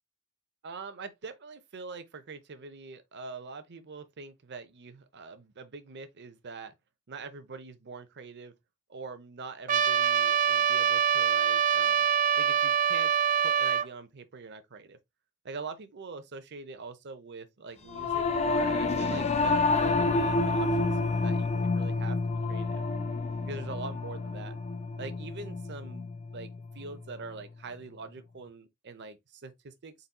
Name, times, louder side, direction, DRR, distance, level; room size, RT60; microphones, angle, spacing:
voice 1, 0.6-6.7 7.1-8.5 8.9-12.1 12.4-13.1 13.4-15.0 15.4-22.8 23.4-24.6 25.0-26.5 26.7-29.9, right 4 dB, 55° right, 0.7 m, -44 dB
Trumpet, 9.7-13.9, right 8 dB, 35° right, 0.3 m, -25 dB
Singing / Musical instrument, 17.9-27.5, left 3 dB, 30° left, 0.5 m, -29 dB
4.1 x 4.0 x 2.2 m
head